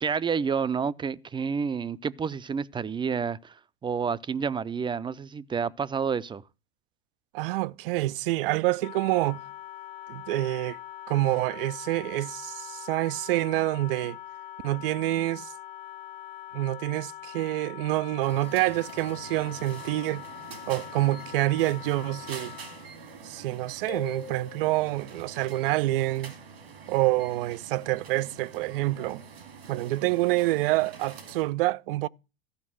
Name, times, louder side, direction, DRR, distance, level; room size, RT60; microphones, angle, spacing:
voice 1, 0.0-6.4, right 6 dB, 15° right, 0.5 m, -29 dB
voice 2, 7.3-9.4 10.1-10.8 11.1-14.2 14.6-15.5 16.5-20.3 20.7-22.5 23.2-26.3 26.9-29.2 29.7-32.1, right 17 dB, 70° right, 0.5 m, -27 dB
Wind instrument woodwind instrument, 8.8-22.9, left 13 dB, 60° left, 1.0 m, -43 dB
Cash register, 18.2-31.5, right 5 dB, 85° right, 2.2 m, -46 dB
sound 1, 23.9-25.4, left 9 dB, 35° left, 0.9 m, -43 dB
14.0 x 5.3 x 6.2 m
hypercardioid pair, 80°, 30 cm